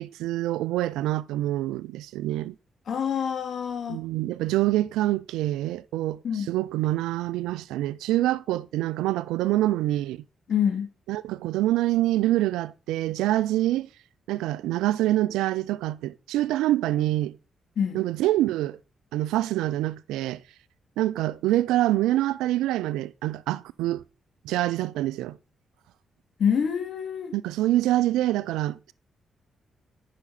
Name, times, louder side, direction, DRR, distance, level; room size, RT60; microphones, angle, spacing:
voice 1, 0.0-2.5 3.9-6.2 6.5-10.2 11.1-13.9 14.3-17.4 17.9-18.8 19.1-20.4 21.0-24.0 24.4-25.4 27.3-28.9, right 15 dB, 90° right, 0.3 m, -26 dB
voice 2, 2.9-4.0 6.2-6.5 10.5-10.9 17.8-18.0 26.4-27.3, left 7 dB, 65° left, 2.3 m, -26 dB
9.7 x 5.9 x 4.1 m
supercardioid pair, 50°, 0 cm